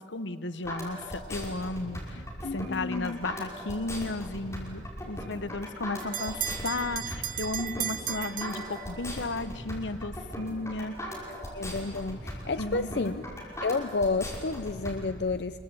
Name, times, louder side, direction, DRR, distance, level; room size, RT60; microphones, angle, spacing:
voice 1, 0.0-2.2 2.5-10.9 12.6-13.2, left 2 dB, 75° left, 13 dB, 1.0 m, -34 dB
sound 1, 0.6-14.9, equal, 15° left, 5.6 m, -38 dB
voice 2, 2.2-3.2 11.3-13.2 13.6-15.6, left 3 dB, 60° left, 11 dB, 0.6 m, -31 dB
Bell, 5.5-9.3, right 10 dB, 45° right, 0.7 m, -36 dB
26.0 x 23.5 x 8.9 m, 2.3 s
head